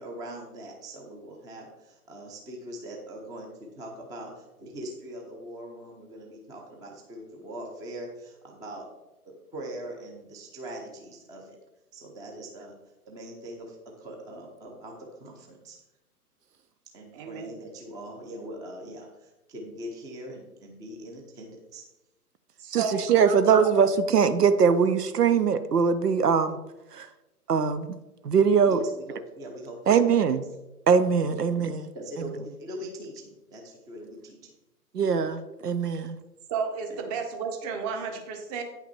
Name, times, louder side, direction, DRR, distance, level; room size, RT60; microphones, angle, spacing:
voice 1, 0.0-8.9 9.3-11.6 11.9-12.8 13.1-15.8 16.9-21.9 28.7-29.8 30.0-30.2 31.2-31.4 31.9-34.5 36.9-37.0, right 1 dB, 10° right, 1 dB, 0.6 m, -41 dB
voice 2, 17.1-17.5 22.6-23.9 36.5-38.6, right 5 dB, 25° right, 5 dB, 1.1 m, -33 dB
voice 3, 22.7-26.6 26.9-27.1 27.5-28.0 28.2-28.8 29.9-30.4 30.9-31.9 34.9-36.2, right 6 dB, 80° right, 13 dB, 0.7 m, -22 dB
9.0 x 5.8 x 4.3 m, 1.0 s
figure-of-eight pair, 120°, 46 cm